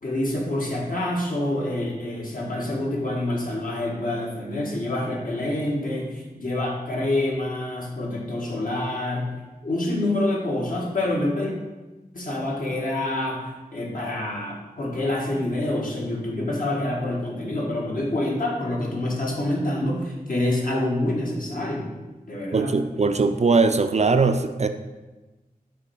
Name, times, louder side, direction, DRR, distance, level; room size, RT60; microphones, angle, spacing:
voice 1, 0.0-9.3 9.6-11.5 12.1-21.9 22.3-22.8, left 1 dB, 60° left, -2 dB, 1.5 m, -27 dB
voice 2, 22.5-24.7, right 4 dB, 45° right, 8 dB, 0.4 m, -20 dB
6.2 x 3.3 x 5.6 m, 1.1 s
wide cardioid pair, 55°, 16 cm